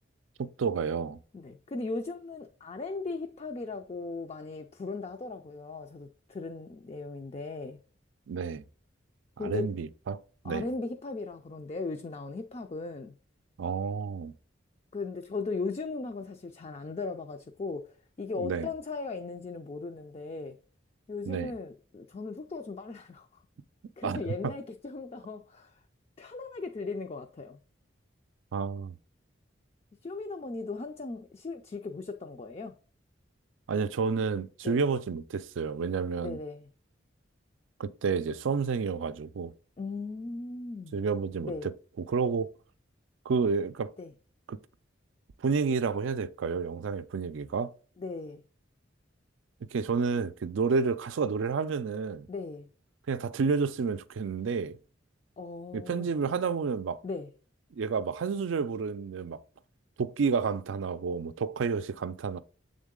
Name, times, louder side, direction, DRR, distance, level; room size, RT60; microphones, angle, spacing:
voice 1, 0.4-1.2 8.3-8.6 9.4-10.2 10.4-10.7 13.6-14.3 18.4-18.7 21.3-21.5 24.0-24.5 28.5-29.0 33.7-36.4 37.8-39.5 40.9-42.5 43.3-43.9 44.5-44.6 45.4-47.7 49.7-52.3 53.1-54.8 55.7-57.0 57.7-59.4 60.0-62.4, right 5 dB, 85° right, 0.4 m, -30 dB
voice 2, 1.3-7.8 9.4-9.7 10.4-13.1 14.9-20.6 21.1-23.3 24.0-25.7 26.2-27.6 30.0-32.7 34.6-34.8 36.2-36.7 39.8-41.0 41.4-41.7 44.0-44.1 48.0-48.4 52.3-52.7 55.4-56.1 57.0-57.3, left 3 dB, 30° left, 0.3 m, -37 dB
7.1 x 3.7 x 3.7 m
head